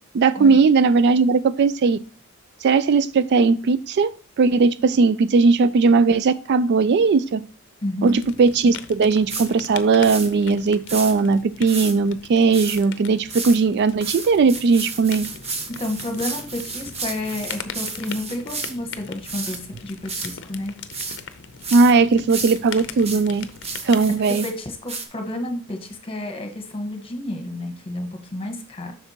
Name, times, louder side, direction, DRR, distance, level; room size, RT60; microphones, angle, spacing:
voice 1, 0.1-2.0 2.6-4.1 4.4-7.4 8.0-15.2 21.7-23.5 23.8-24.4, right 4 dB, 50° right, 15 dB, 0.3 m, -18 dB
voice 2, 7.8-8.2 15.8-20.7 24.3-28.9, left 1 dB, 25° left, 4 dB, 1.3 m, -30 dB
sound 1, 8.0-24.2, left 7 dB, 60° left, 0.6 m, -40 dB
sound 2, 9.3-9.5 10.0-10.3 10.9-11.1 11.7-11.9 12.5-12.8 13.3-13.6 14.0-18.7 19.2-19.6 20.1-20.4 20.9-21.2 21.6-21.9 22.3-24.5 24.9-25.1, right 4 dB, 30° right, 1.0 m, -32 dB
7.9 x 6.0 x 2.9 m, 0.37 s
head